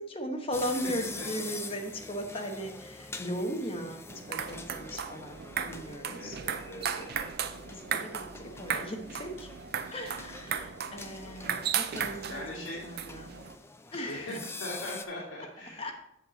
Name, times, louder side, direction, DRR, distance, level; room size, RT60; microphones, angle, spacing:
voice 1, 0.0-4.0 4.3-5.4 5.7-6.4 7.7-9.5 9.9-13.3 13.9-14.4 15.8-15.9, equal, 25° left, 3 dB, 1.0 m, -37 dB
sound 1, 0.5-15.0, left 3 dB, 10° left, 0.4 m, -45 dB
voice 2, 1.2-1.7 6.1-7.1 12.3-12.8 13.9-15.9, left 1 dB, 70° left, -6 dB, 2.5 m, -41 dB
sound 2, 4.1-13.5, right 8 dB, 50° right, 0.5 m, -36 dB
7.6 x 7.4 x 4.0 m, 0.80 s
head